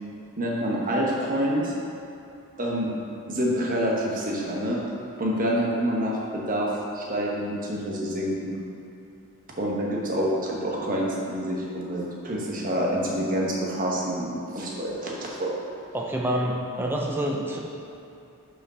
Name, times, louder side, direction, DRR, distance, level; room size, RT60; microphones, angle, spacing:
voice 1, 0.4-1.7 2.6-2.9 3.3-4.8 5.2-8.6 9.6-15.5, equal, 40° right, -3 dB, 1.2 m, -27 dB
voice 2, 15.9-17.6, right 1 dB, 10° right, -1 dB, 0.6 m, -27 dB
5.9 x 5.0 x 5.5 m, 2.7 s
head